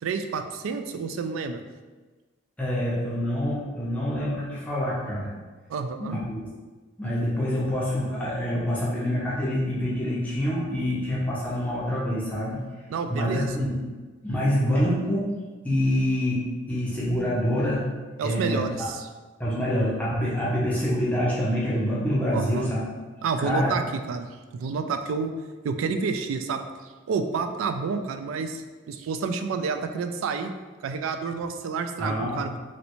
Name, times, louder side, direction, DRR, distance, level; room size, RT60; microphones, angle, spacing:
voice 1, 0.0-1.6 5.7-6.2 12.9-13.5 18.2-19.1 22.3-22.7 23.2-23.8 24.1-25.3 25.6-30.5 30.8-32.5, right 5 dB, 90° right, 8 dB, 0.3 m, -29 dB
voice 2, 2.6-5.3 6.0-6.4 7.0-12.6 13.1-13.7 14.2-15.3 15.6-17.9 18.2-18.6 19.4-22.9 23.4-23.7 32.0-32.4, equal, 5° left, -7 dB, 0.6 m, -26 dB
3.1 x 2.7 x 2.9 m, 1.3 s
head